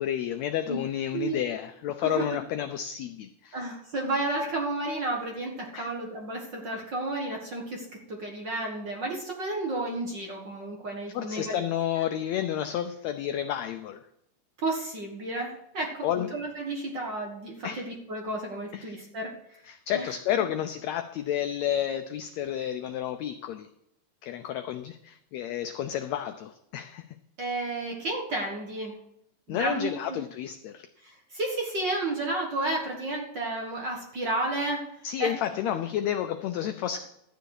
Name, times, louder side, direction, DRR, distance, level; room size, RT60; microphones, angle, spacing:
voice 1, 0.0-3.6 5.7-5.9 11.1-14.0 16.0-16.3 17.6-17.8 18.7-19.0 19.7-23.7 24.2-27.0 29.5-30.9 35.0-37.0, left 10 dB, 85° left, 8 dB, 1.5 m, -31 dB
voice 2, 1.1-1.4 2.0-2.4 3.5-11.6 14.6-19.6 19.9-20.1 27.4-28.9 29.5-30.2 31.0-35.3, right 2 dB, 45° right, 0 dB, 1.6 m, -32 dB
12.5 x 9.2 x 4.8 m, 0.80 s
omnidirectional pair, 3.8 m